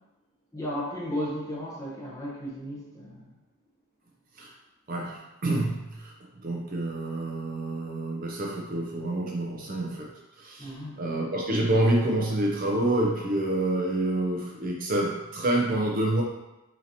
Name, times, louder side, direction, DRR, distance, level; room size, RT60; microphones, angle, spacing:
voice 1, 0.5-3.3 10.6-11.0, equal, 15° left, -5 dB, 0.8 m, -34 dB
voice 2, 4.9-6.1 6.4-16.2, right 1 dB, 40° right, -1 dB, 0.5 m, -28 dB
5.7 x 2.8 x 2.8 m, 1.0 s
head